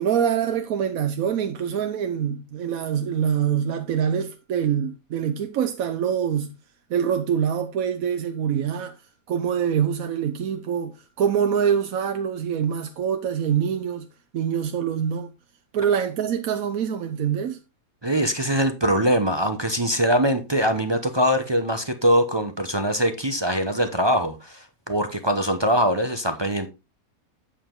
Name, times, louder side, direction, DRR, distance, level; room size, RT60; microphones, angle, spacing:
voice 1, 0.0-6.5 6.9-9.0 9.3-14.1 14.3-15.3 15.7-17.6, right 8 dB, 75° right, 1.2 m, -25 dB
voice 2, 18.0-26.7, equal, 25° right, 0.6 m, -22 dB
8.6 x 7.0 x 3.7 m
omnidirectional pair, 1.5 m